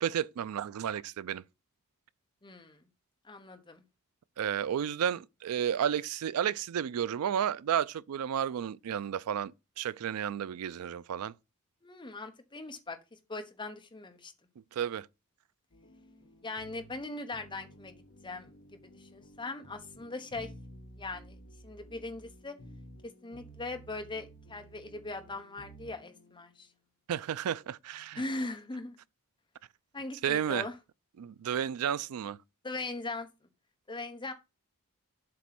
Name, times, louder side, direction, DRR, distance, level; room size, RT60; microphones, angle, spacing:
voice 1, 0.0-1.4 4.4-11.3 14.8-15.1 27.1-28.2 30.2-30.7 31.2-32.4, right 9 dB, 75° right, 0.4 m, -32 dB
voice 2, 2.4-2.8 3.2-3.8 11.8-13.0 13.3-14.3 16.4-17.9 18.2-18.5 19.0-20.5 21.0-22.5 23.2-26.7 28.2-29.0 29.9-30.8 32.6-33.3 33.9-34.3, left 2 dB, 20° left, 1.0 m, -40 dB
sound 1, 15.7-26.7, right 1 dB, 55° left, 1.6 m, -53 dB
7.7 x 3.1 x 5.9 m
head